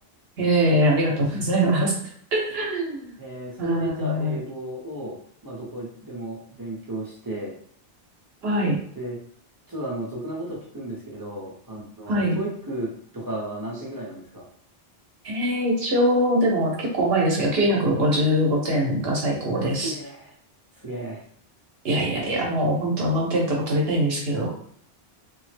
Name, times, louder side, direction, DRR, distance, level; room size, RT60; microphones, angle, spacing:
voice 1, 0.4-1.9 2.3-3.1 3.6-4.4 8.4-8.8 12.1-12.4 15.2-19.9 21.8-24.5, equal, 70° right, -1 dB, 0.9 m, -22 dB
voice 2, 3.2-5.2 5.4-7.5 9.0-9.2 9.7-14.5 19.4-20.3 20.7-21.2, right 1 dB, 20° right, -4 dB, 0.7 m, -34 dB
3.4 x 2.0 x 3.2 m, 0.62 s
omnidirectional pair, 1.1 m